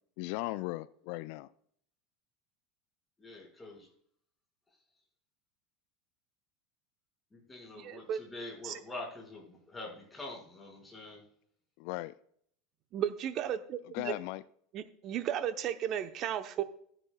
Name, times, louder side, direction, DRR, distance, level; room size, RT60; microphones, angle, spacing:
voice 1, 0.2-1.5 11.8-12.1 13.9-14.4, left 19 dB, 55° left, 0.3 m, -37 dB
voice 2, 3.2-3.9 7.3-11.2, left 2 dB, 15° left, 5.1 m, -45 dB
voice 3, 7.7-8.2 8.6-8.8 12.9-14.2 14.7-16.6, right 10 dB, 45° right, 0.8 m, -34 dB
16.0 x 9.9 x 2.3 m
figure-of-eight pair, 75°, 0 cm